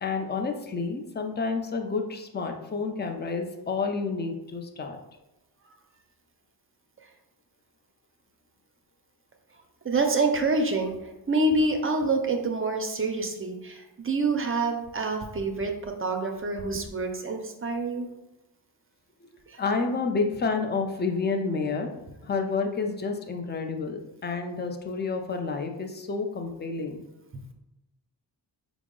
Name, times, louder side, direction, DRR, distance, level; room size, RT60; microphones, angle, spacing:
voice 1, 0.0-5.0 19.6-21.9 22.2-27.0, left 4 dB, 25° left, 4 dB, 0.4 m, -29 dB
voice 2, 9.8-10.9 11.3-18.1, right 3 dB, 30° right, 4 dB, 0.5 m, -27 dB
4.4 x 2.0 x 3.7 m, 0.94 s
cardioid pair, 80°, 43 cm